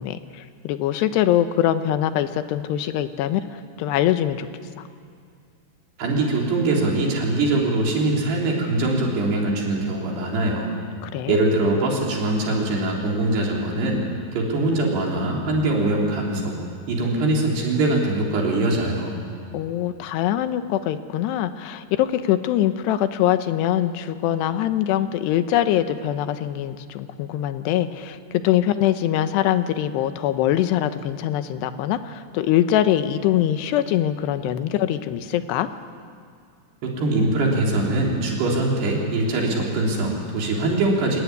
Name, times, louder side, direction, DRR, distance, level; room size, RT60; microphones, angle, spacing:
voice 1, 0.0-4.5 4.8-4.9 11.0-11.4 19.5-28.2 28.4-35.7, left 11 dB, 80° left, 10 dB, 3.1 m, -23 dB
voice 2, 6.0-10.8 11.3-14.0 14.3-16.6 16.9-19.2 36.8-41.2, right 2 dB, 70° right, -2 dB, 5.5 m, -22 dB
26.5 x 19.0 x 9.6 m, 2.2 s
omnidirectional pair, 4.9 m